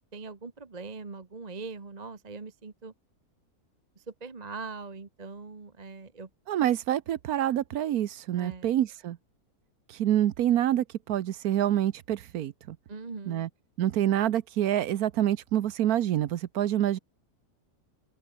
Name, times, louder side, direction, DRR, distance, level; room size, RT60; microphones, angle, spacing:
voice 1, 0.1-2.9 4.0-6.3 8.3-8.7 12.9-13.5, right 4 dB, 30° right, 1.3 m, -41 dB
voice 2, 6.5-9.2 9.9-12.8 13.3-13.5 13.8-17.0, right 11 dB, 75° right, 1.3 m, -27 dB
open air
omnidirectional pair, 1.6 m